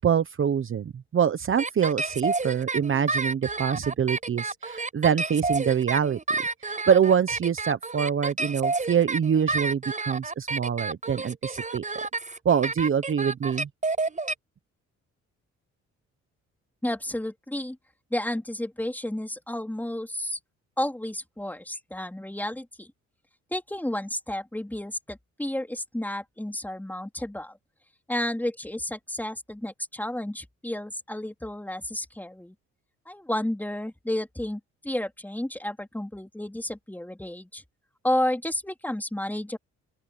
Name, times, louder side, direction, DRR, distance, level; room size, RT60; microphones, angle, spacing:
voice 1, 0.0-6.2 6.6-12.0 12.4-13.7, right 8 dB, 45° right, 1.1 m, -25 dB
Dubstep Vocal Chop, 1.6-14.3, right 3 dB, 25° right, 7.8 m, -30 dB
voice 2, 16.8-17.8 18.1-20.4 20.8-22.9 23.5-27.6 28.1-32.5 33.1-37.6 38.0-39.6, left 1 dB, 5° left, 3.8 m, -31 dB
open air
cardioid pair, 90°, 30 cm